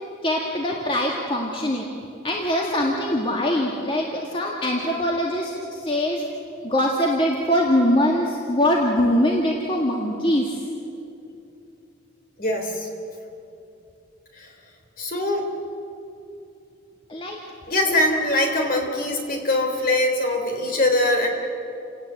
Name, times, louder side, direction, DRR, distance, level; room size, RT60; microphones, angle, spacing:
voice 1, 0.2-1.9 2.2-6.2 6.6-10.6 17.1-17.4, equal, 25° left, -1 dB, 2.0 m, -22 dB
voice 2, 12.4-12.9 14.4-14.5 15.0-15.5 17.7-21.3, left 1 dB, 50° left, 3 dB, 3.7 m, -22 dB
29.5 x 17.5 x 8.2 m, 2.8 s
head